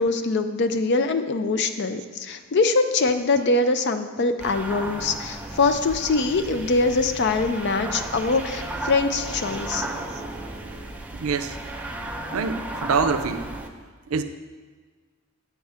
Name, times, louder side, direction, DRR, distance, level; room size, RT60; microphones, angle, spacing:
voice 1, 0.0-9.9, left 3 dB, 55° left, 9 dB, 0.5 m, -23 dB
sound 1, 4.4-13.7, right 1 dB, 5° right, 0.4 m, -34 dB
voice 2, 11.1-11.6 12.3-13.5 14.1-14.2, right 5 dB, 90° right, 10 dB, 0.5 m, -25 dB
8.3 x 3.5 x 6.5 m, 1.5 s
head